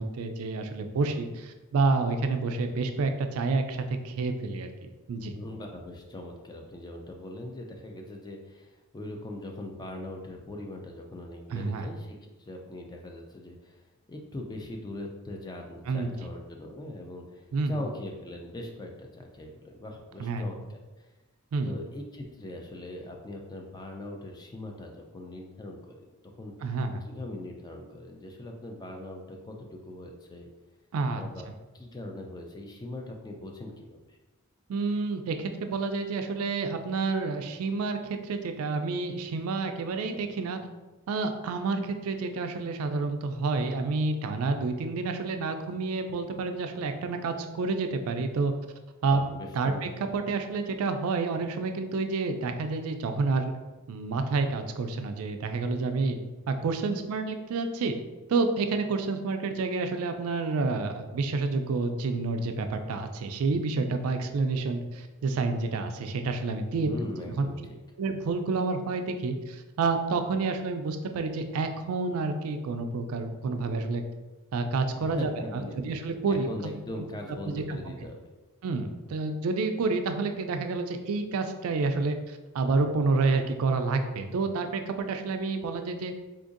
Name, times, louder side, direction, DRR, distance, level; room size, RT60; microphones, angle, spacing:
voice 1, 0.0-4.7 5.1-5.3 11.5-11.9 15.9-16.1 17.5-17.8 20.2-20.4 21.5-21.8 26.6-27.0 30.9-31.5 34.7-40.6 41.1-48.5 49.0-49.2 49.5-53.5 53.9-56.2 56.5-58.0 58.3-66.9 67.4-67.5 68.0-74.0 74.5-76.5 77.5-78.0 78.6-86.1, right 3 dB, 70° right, 6 dB, 0.3 m, -29 dB
voice 2, 5.4-13.8 14.1-20.8 21.6-26.1 26.4-26.5 27.0-30.5 31.1-31.5 31.7-34.0 49.1-49.8 66.8-67.7 75.0-75.7 76.3-78.3, left 1 dB, 20° left, 2 dB, 0.3 m, -41 dB
3.7 x 2.6 x 2.4 m, 1.1 s
head